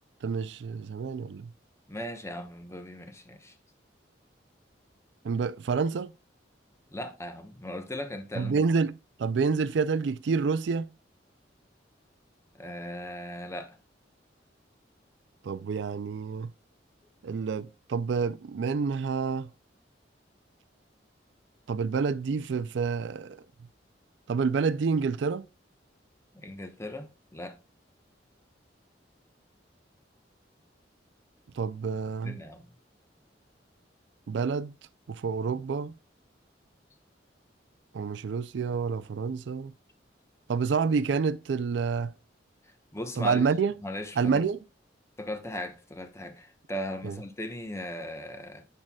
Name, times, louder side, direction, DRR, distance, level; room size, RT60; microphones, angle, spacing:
voice 1, 0.2-1.5 5.2-6.1 8.4-8.9 9.2-10.9 15.4-16.5 17.2-19.5 21.7-23.4 24.3-25.5 31.6-32.4 34.3-34.7 35.1-35.9 37.9-39.7 40.5-42.1 43.2-43.7 44.2-44.6 47.0-47.2, right 5 dB, 70° right, 0.4 m, -28 dB
voice 2, 1.9-3.5 6.9-8.6 12.5-13.8 26.3-27.6 32.2-32.7 42.6-43.5 43.8-44.5 45.2-48.6, left 1 dB, 15° left, 0.9 m, -38 dB
7.5 x 6.4 x 2.3 m
head